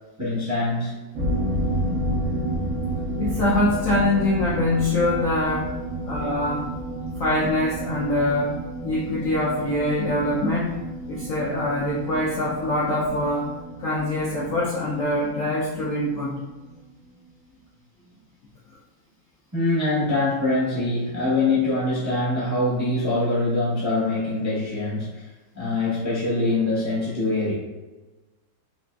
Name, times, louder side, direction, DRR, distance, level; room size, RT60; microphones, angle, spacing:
voice 1, 0.2-1.1 19.5-25.3 25.5-27.5, left 2 dB, 20° right, -8 dB, 0.5 m, -24 dB
sound 1, 1.1-16.5 16.8-16.9 17.2-17.3, right 1 dB, 60° right, 0.8 m, -31 dB
voice 2, 3.2-5.7 6.1-6.7 7.2-10.8 11.1-16.3, left 1 dB, 65° left, -6 dB, 0.8 m, -24 dB
4.1 x 3.0 x 2.3 m, 1.2 s
omnidirectional pair, 2.0 m